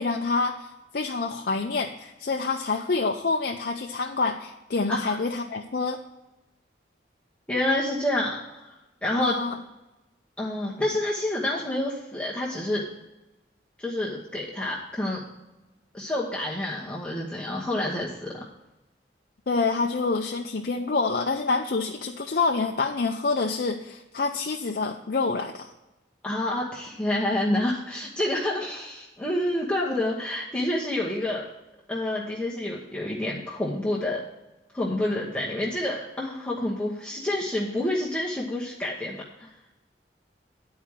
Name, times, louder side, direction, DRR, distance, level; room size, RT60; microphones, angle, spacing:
voice 1, 0.0-6.0 9.2-9.6 19.5-25.7, left 4 dB, 55° left, 2 dB, 0.5 m, -27 dB
voice 2, 7.5-8.7 9.0-9.4 10.4-12.8 13.8-15.2 15.9-18.5 26.2-31.5 31.9-34.2 34.7-39.5, left 1 dB, 5° left, -6 dB, 1.0 m, -28 dB
10.0 x 4.8 x 7.2 m, 1.0 s
head